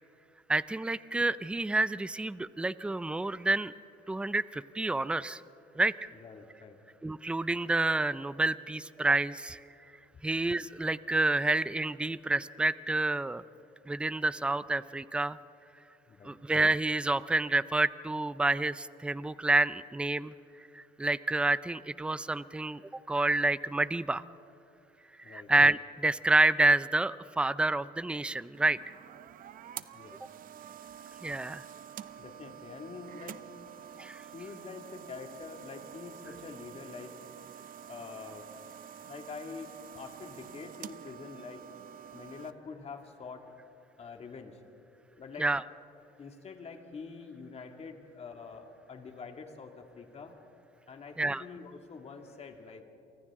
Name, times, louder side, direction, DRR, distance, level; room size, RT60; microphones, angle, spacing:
voice 1, 0.5-3.7 4.1-5.4 5.8-5.9 7.0-9.6 10.2-13.4 13.9-15.4 16.2-20.3 20.7-22.8 23.1-24.2 25.3-28.8 31.2-31.6 34.0-34.2 45.4-45.6 51.2-51.4, right 2 dB, 5° right, 17 dB, 0.4 m, -28 dB
voice 2, 6.1-6.8 16.1-16.4 25.2-25.5 29.9-30.2 32.2-33.4 34.3-37.2 37.9-38.5 39.1-41.6 42.1-43.5 44.0-44.6 45.2-45.5 46.2-50.3 50.9-52.8, left 5 dB, 40° left, 4 dB, 2.2 m, -45 dB
sound 1, 28.5-42.5, right 9 dB, 55° right, 0.7 m, -48 dB
30.0 x 24.0 x 3.7 m, 2.9 s
cardioid pair, 110°, 17 cm